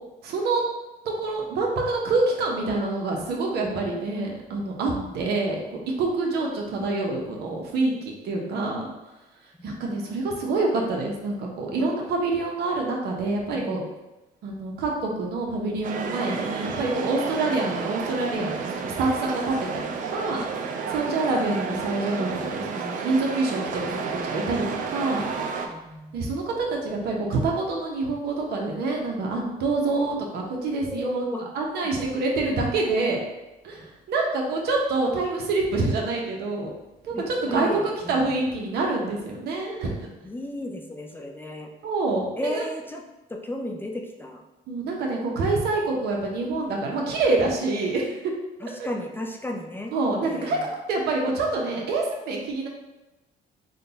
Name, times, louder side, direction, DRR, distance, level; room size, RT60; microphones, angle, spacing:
voice 1, 0.2-0.6 1.2-8.9 9.6-13.8 14.4-20.4 20.9-25.3 26.1-31.2 31.5-33.2 33.6-36.7 37.0-40.0 41.8-42.7 44.7-48.2 48.8-48.9 49.9-52.7, right 3 dB, 70° right, 0 dB, 0.9 m, -26 dB
voice 2, 13.5-13.9 20.8-21.0 25.7-26.2 29.7-29.8 30.9-31.5 37.1-38.4 40.2-41.7 42.4-43.0 43.3-44.4 45.6-45.7 48.6-49.9 50.2-50.7, left 1 dB, 10° left, 2 dB, 0.4 m, -34 dB
sound 1, 15.8-25.7, right 5 dB, 50° right, 0.5 m, -31 dB
3.7 x 2.3 x 4.0 m, 1.0 s
cardioid pair, 110°, 17 cm